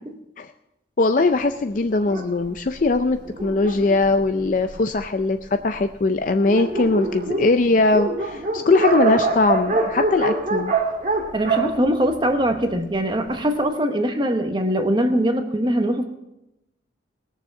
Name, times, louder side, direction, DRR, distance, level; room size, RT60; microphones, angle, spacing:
voice 1, 1.0-10.7, left 3 dB, 45° left, 7 dB, 0.4 m, -20 dB
Dog, 2.0-5.0 5.7-5.8 6.1-6.2 6.4-12.8, right 3 dB, 40° right, 1.7 m, -25 dB
voice 2, 11.3-16.1, right 1 dB, 25° right, 6 dB, 1.0 m, -22 dB
19.0 x 7.0 x 5.8 m, 0.89 s
head